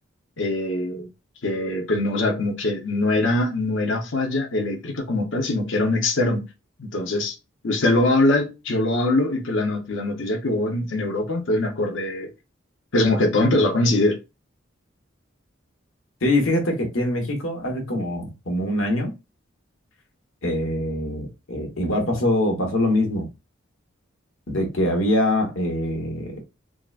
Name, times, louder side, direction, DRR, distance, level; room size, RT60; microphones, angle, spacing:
voice 1, 0.4-1.1 1.4-6.5 6.8-7.3 7.6-12.3 12.9-14.2, left 2 dB, 70° left, 0.8 m, -22 dB
voice 2, 16.2-19.1 20.4-23.3 24.5-26.4, left 1 dB, 90° left, 1.1 m, -23 dB
3.7 x 2.1 x 2.3 m
head